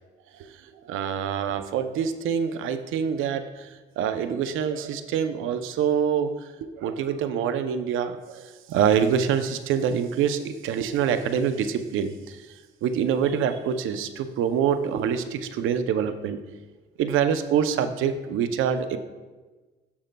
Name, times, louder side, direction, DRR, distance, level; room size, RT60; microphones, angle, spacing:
voice 1, 0.9-3.7 4.0-6.3 6.8-8.4 8.7-12.4 12.8-16.4 17.0-19.0, right 8 dB, 85° right, 10 dB, 0.5 m, -25 dB
14.0 x 5.1 x 2.2 m, 1.3 s
cardioid pair, 90°, 20 cm